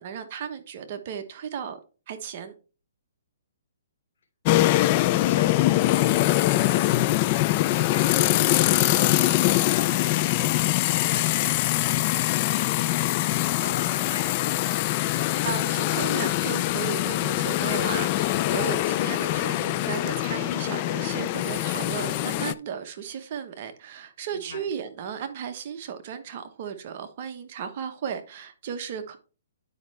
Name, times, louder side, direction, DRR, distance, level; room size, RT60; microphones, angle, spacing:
voice 1, 0.0-1.8 2.1-2.5 15.4-29.2, right 7 dB, 40° right, 1.0 m, -35 dB
voice 2, 4.5-9.1 9.5-14.7 24.3-24.6, left 4 dB, 65° left, 2.9 m, -42 dB
sound 1, 4.5-22.5, left 16 dB, 30° left, 0.3 m, -23 dB
9.7 x 5.3 x 3.4 m
hypercardioid pair, 155°, 0 cm